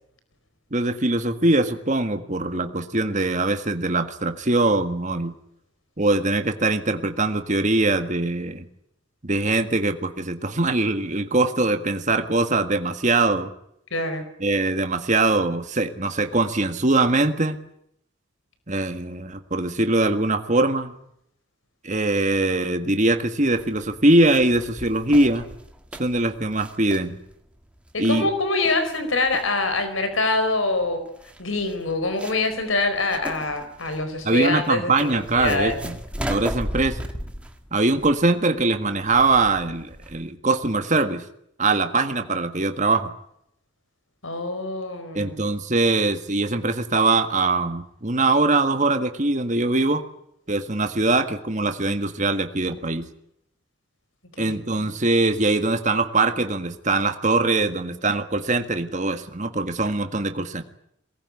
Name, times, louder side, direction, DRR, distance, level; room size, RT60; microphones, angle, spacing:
voice 1, 0.7-5.3 6.0-8.7 9.2-13.5 14.4-17.6 18.7-20.9 21.8-25.5 26.0-27.2 28.0-28.3 34.2-36.0 36.3-37.0 37.7-41.2 41.6-43.1 45.1-50.0 50.5-53.1 54.4-60.6, right 2 dB, 35° right, 7 dB, 1.7 m, -22 dB
voice 2, 13.9-14.2 27.9-31.0 31.4-35.8 44.2-45.4 54.5-54.9, left 2 dB, 80° left, 9 dB, 4.7 m, -25 dB
sound 1, 23.5-40.3, equal, 5° right, 1.9 m, -37 dB
23.0 x 19.5 x 9.7 m, 0.74 s
head